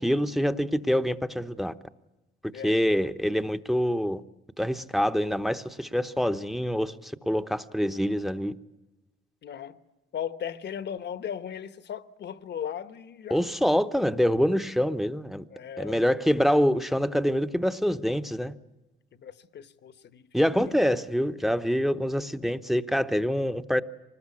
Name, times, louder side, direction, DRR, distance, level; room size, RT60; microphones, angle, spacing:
voice 1, 0.0-1.7 2.6-4.2 4.6-8.5 13.3-15.4 15.8-18.5 20.3-23.8, equal, ahead, 0.9 m, -25 dB
voice 2, 2.5-2.9 9.4-9.8 10.1-13.4 15.5-16.0 19.1-20.3, left 8 dB, 60° left, 1.2 m, -37 dB
25.0 x 19.5 x 8.4 m
cardioid pair, 90°, 20 cm